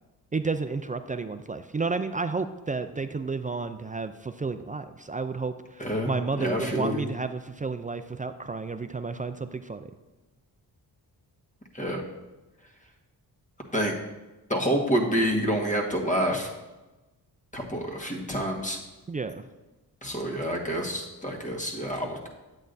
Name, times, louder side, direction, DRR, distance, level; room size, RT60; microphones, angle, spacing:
voice 1, 0.3-9.9 19.1-19.5, right 4 dB, 20° right, 10 dB, 0.3 m, -31 dB
voice 2, 5.8-7.1 11.7-12.0 13.7-14.0 14.5-16.5 17.5-18.8 20.0-22.3, equal, 20° left, 1 dB, 1.5 m, -28 dB
8.7 x 8.4 x 2.6 m, 1.1 s
cardioid pair, 70°, 40 cm